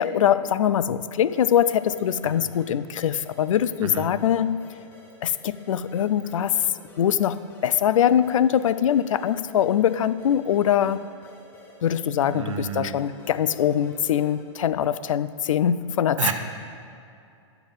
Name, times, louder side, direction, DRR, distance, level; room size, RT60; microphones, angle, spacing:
voice 1, 0.0-4.8 5.2-6.7 7.0-11.0 11.8-16.3, left 9 dB, 85° left, 0.4 m, -23 dB
sound 1, 1.3-14.6, left 1 dB, 10° left, 0.7 m, -51 dB
voice 2, 3.8-4.1 12.3-13.0 16.2-16.3, right 7 dB, 75° right, 1.0 m, -30 dB
10.5 x 6.9 x 5.4 m
hypercardioid pair, 180°, 16 cm